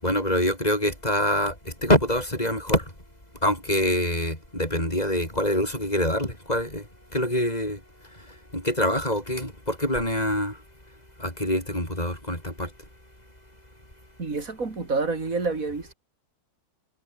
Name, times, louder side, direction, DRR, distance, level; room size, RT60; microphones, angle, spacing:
voice 1, 0.0-1.5 1.8-2.8 3.4-6.8 7.1-7.8 8.5-10.6 11.2-12.7, left 1 dB, 25° left, 8.3 m, -25 dB
voice 2, 14.2-15.9, right 3 dB, 55° right, 3.8 m, -28 dB
omnidirectional pair, 1.8 m